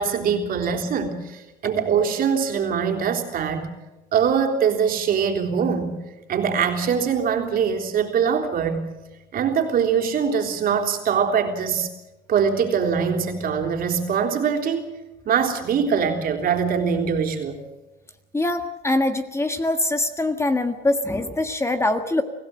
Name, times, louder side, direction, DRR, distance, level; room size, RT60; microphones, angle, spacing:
voice 1, 0.0-3.7 4.1-6.0 6.3-8.8 9.3-11.9 12.3-15.0 15.3-17.6, right 7 dB, 60° right, 3 dB, 3.6 m, -23 dB
voice 2, 18.3-22.2, left 2 dB, 15° left, 8 dB, 1.5 m, -23 dB
25.0 x 16.0 x 7.8 m, 1.0 s
cardioid pair, 110°, 17 cm